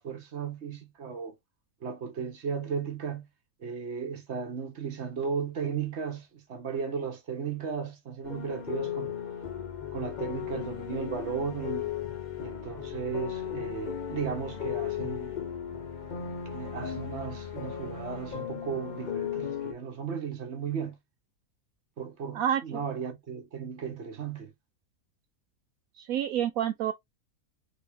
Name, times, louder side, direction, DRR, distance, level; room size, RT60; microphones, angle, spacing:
voice 1, 0.0-1.4 1.8-3.3 3.6-9.1 9.9-11.9 12.4-15.3 16.5-21.0 22.0-24.5, right 6 dB, 50° right, 1.1 m, -35 dB
sound 1, 8.2-19.7, left 9 dB, 45° left, 0.6 m, -36 dB
voice 2, 22.3-22.8 26.0-26.9, right 10 dB, 75° right, 1.0 m, -28 dB
3.8 x 2.9 x 3.4 m
omnidirectional pair, 1.6 m